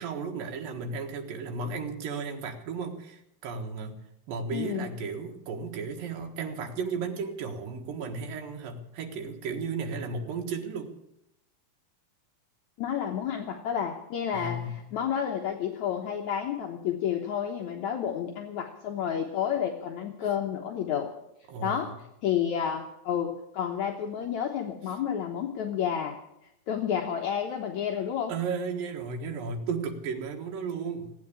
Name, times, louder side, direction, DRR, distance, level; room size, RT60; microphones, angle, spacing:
voice 1, 0.0-4.0 4.3-10.9 14.3-14.8 21.5-22.0 28.3-31.1, right 4 dB, 80° right, 2 dB, 3.3 m, -34 dB
voice 2, 4.5-4.9 12.8-14.6 14.9-21.1 21.6-21.9 22.2-26.2 26.7-28.3, left 8 dB, 65° left, 2 dB, 2.3 m, -30 dB
17.5 x 9.2 x 8.7 m, 0.84 s
omnidirectional pair, 4.0 m